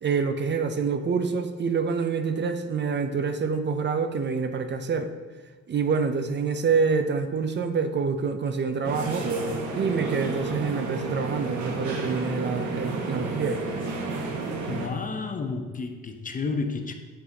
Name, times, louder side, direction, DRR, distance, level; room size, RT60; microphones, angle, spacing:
voice 1, 0.0-5.1 5.7-9.3 9.7-13.6, right 5 dB, 35° right, 0.5 m, -26 dB
sound 1, 8.8-14.9, right 3 dB, 75° right, 1.1 m, -31 dB
voice 2, 14.7-16.9, left 4 dB, 25° left, 0.7 m, -31 dB
7.4 x 6.0 x 2.7 m
cardioid pair, 90°, 30 cm